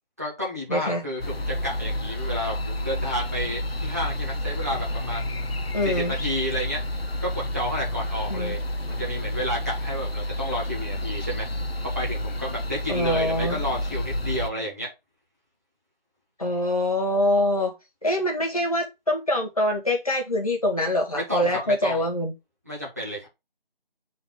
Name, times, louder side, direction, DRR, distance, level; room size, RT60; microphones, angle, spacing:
voice 1, 0.2-5.4 5.8-6.8 7.2-8.6 8.9-11.5 11.9-14.9 21.1-22.0 22.7-23.3, equal, 15° right, 1.4 m, -31 dB
voice 2, 0.7-1.0 5.7-6.2 8.3-8.6 12.9-13.6 16.4-17.7 18.0-22.3, left 1 dB, 40° left, 1.8 m, -24 dB
sound 1, 1.2-14.5, left 1 dB, 90° left, 0.9 m, -30 dB
8.0 x 3.9 x 3.4 m
figure-of-eight pair, 175°, 29 cm